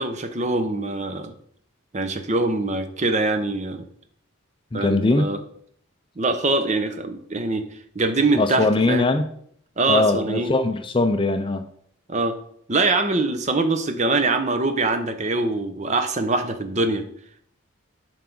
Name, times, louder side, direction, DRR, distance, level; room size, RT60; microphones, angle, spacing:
voice 1, 0.0-1.3 1.9-3.8 4.7-5.4 6.2-7.6 7.9-9.1 9.8-10.5 12.1-12.3 12.7-17.0, right 2 dB, 35° right, 8 dB, 0.7 m, -23 dB
voice 2, 4.7-5.3 8.4-9.2 9.9-11.6, left 2 dB, 25° left, 8 dB, 0.5 m, -21 dB
11.5 x 4.7 x 4.0 m, 0.66 s
head